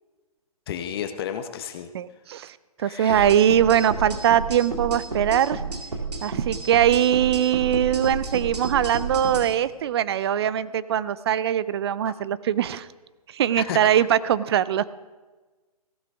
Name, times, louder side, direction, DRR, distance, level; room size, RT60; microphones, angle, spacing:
voice 1, 0.7-1.9 2.8-3.3 12.0-12.1 13.5-13.8, left 9 dB, 40° left, 8 dB, 0.8 m, -32 dB
voice 2, 1.9-2.5 2.8-5.6 6.2-12.9 13.3-15.0, right 10 dB, 40° right, 17 dB, 0.5 m, -22 dB
sound 1, 3.1-9.5, right 3 dB, 90° right, 2.3 m, -31 dB
16.0 x 13.0 x 3.5 m, 1.3 s
hypercardioid pair, 140°, 20 cm